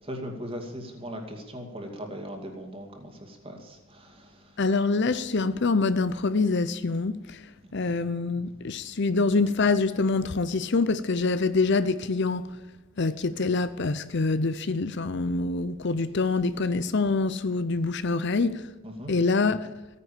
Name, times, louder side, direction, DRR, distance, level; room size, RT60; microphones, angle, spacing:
voice 1, 0.0-4.6 7.7-7.8 18.8-19.1, equal, 25° right, 2.5 m, -39 dB
voice 2, 4.6-7.4 7.7-12.5 13.0-18.7 19.1-19.7, left 3 dB, 55° left, 0.7 m, -25 dB
16.0 x 9.7 x 7.4 m
head